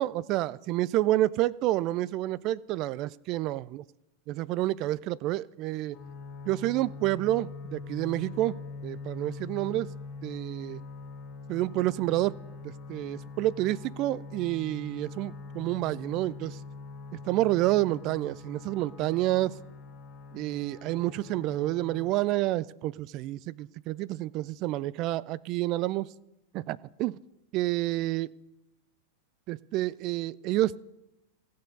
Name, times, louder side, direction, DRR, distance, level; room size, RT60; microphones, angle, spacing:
voice 1, 0.0-3.8 4.3-6.0 6.5-8.6 8.8-9.9 10.2-10.8 11.5-12.4 12.6-16.6 17.1-19.5 20.3-26.1 26.5-27.2 27.5-28.3 29.5-30.8, right 16 dB, 45° right, 21 dB, 0.3 m, -29 dB
sound 1, 5.9-22.1, left 4 dB, 65° left, 2.1 m, -43 dB
15.5 x 6.6 x 5.3 m, 0.98 s
hypercardioid pair, 100°, 0 cm